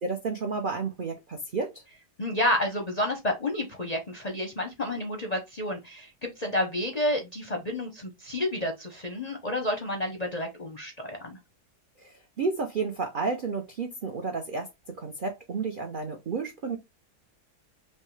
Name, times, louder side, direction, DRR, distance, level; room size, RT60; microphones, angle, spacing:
voice 1, 0.0-1.8 12.0-16.8, right 4 dB, 65° right, 0.5 m, -31 dB
voice 2, 2.2-11.4, left 1 dB, 40° left, 0.5 m, -30 dB
5.4 x 2.1 x 3.2 m
omnidirectional pair, 1.7 m